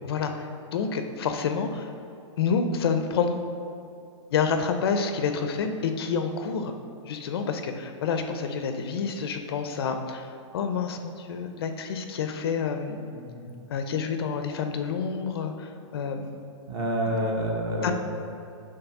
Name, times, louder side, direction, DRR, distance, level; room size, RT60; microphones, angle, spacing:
voice 1, 0.0-1.9 2.4-3.4 4.3-6.7 7.0-13.1 13.7-16.3 17.8-17.9, left 6 dB, 50° left, 6 dB, 0.6 m, -28 dB
voice 2, 13.1-13.5 16.7-17.9, equal, 20° right, 0 dB, 1.0 m, -28 dB
8.9 x 3.3 x 5.9 m, 2.6 s
hypercardioid pair, 160°, 16 cm